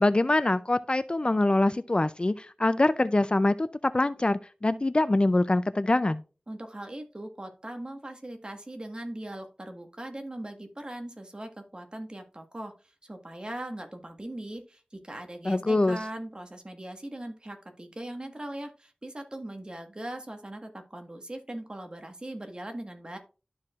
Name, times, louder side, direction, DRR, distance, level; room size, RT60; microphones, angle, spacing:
voice 1, 0.0-6.2 15.4-16.0, left 2 dB, 35° left, 0.4 m, -24 dB
voice 2, 6.5-12.7 13.0-23.2, right 1 dB, 35° right, 1.5 m, -40 dB
12.5 x 4.8 x 2.4 m
wide cardioid pair, 60°, 3 cm